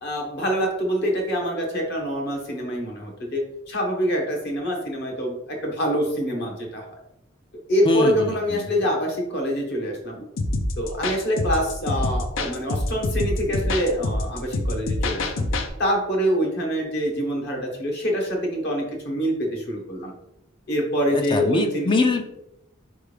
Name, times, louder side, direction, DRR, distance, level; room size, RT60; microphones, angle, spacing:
voice 1, 0.0-6.8 7.7-10.3 10.8-15.4 15.8-20.1 20.7-21.9, equal, 55° left, 0 dB, 1.2 m, -25 dB
voice 2, 7.8-8.7 21.1-22.2, left 3 dB, 25° left, 5 dB, 0.4 m, -23 dB
sound 1, 10.4-15.7, left 2 dB, 75° left, 0.6 m, -26 dB
4.3 x 3.5 x 3.3 m, 0.85 s
head